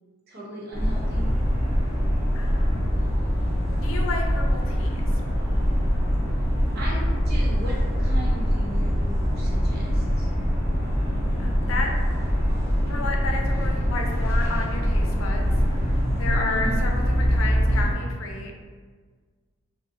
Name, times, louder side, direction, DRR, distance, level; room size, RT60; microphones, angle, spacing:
voice 1, 0.3-1.3 6.8-10.3 16.5-16.8, equal, 55° right, -4 dB, 0.8 m, -37 dB
sound 1, 0.7-17.9, equal, 15° right, 0.8 m, -23 dB
voice 2, 2.3-2.8 3.8-5.0 11.4-11.9 12.9-15.5 15.8-18.6, left 3 dB, 85° left, 2 dB, 0.5 m, -32 dB
2.6 x 2.0 x 3.7 m, 1.5 s
head